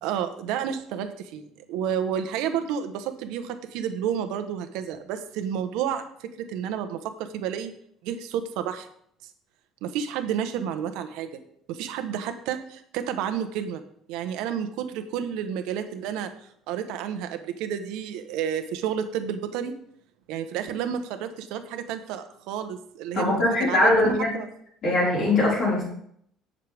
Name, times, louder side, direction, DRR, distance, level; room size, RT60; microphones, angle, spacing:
voice 1, 0.0-7.7 8.0-8.9 9.8-11.3 11.7-13.8 14.1-16.3 16.7-19.7 20.3-23.3 23.6-24.5, right 8 dB, 80° right, 7 dB, 1.1 m, -30 dB
voice 2, 23.1-24.4 24.8-25.8, left 2 dB, 40° left, -4 dB, 5.0 m, -21 dB
17.5 x 6.6 x 3.6 m, 0.66 s
cardioid pair, 170°, 0 cm